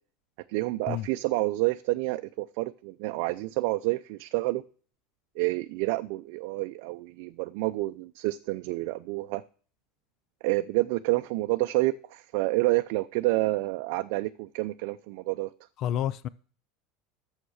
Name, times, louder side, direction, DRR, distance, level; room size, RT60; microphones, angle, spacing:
voice 1, 0.5-4.6 5.4-9.4 10.4-15.5, right 20 dB, 65° right, 0.5 m, -28 dB
voice 2, 15.8-16.3, left 11 dB, 45° left, 0.5 m, -29 dB
11.5 x 7.4 x 6.4 m
supercardioid pair, 135°, 0 cm